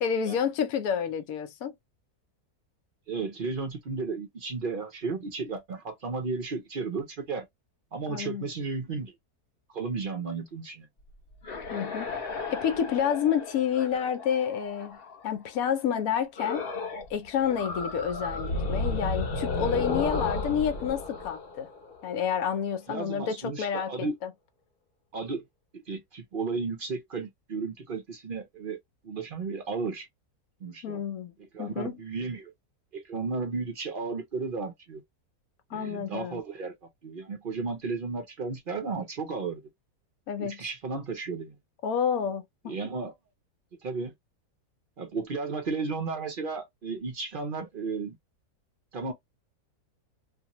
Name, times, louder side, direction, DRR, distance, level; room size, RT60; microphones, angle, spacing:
voice 1, 0.0-1.7 8.1-8.4 11.7-12.1 12.5-15.0 15.2-16.6 17.1-21.7 22.0-24.3 30.8-31.3 31.6-32.0 35.7-36.4 40.3-40.6 41.8-42.7, left 8 dB, 70° left, 1.0 m, -29 dB
voice 2, 3.1-7.5 7.9-9.1 9.7-10.9 22.9-24.2 25.1-25.4 25.9-28.8 29.0-30.1 30.6-31.0 31.4-32.5 32.9-35.0 35.7-36.7 37.0-39.6 40.4-41.6 42.7-43.1 43.8-44.1 45.0-48.2 48.9-49.1, right 4 dB, 55° right, 0.5 m, -34 dB
sound 1, 11.1-15.3 16.4-17.1 17.4-22.3, left 3 dB, 50° left, 0.7 m, -33 dB
2.6 x 2.5 x 2.9 m
omnidirectional pair, 1.6 m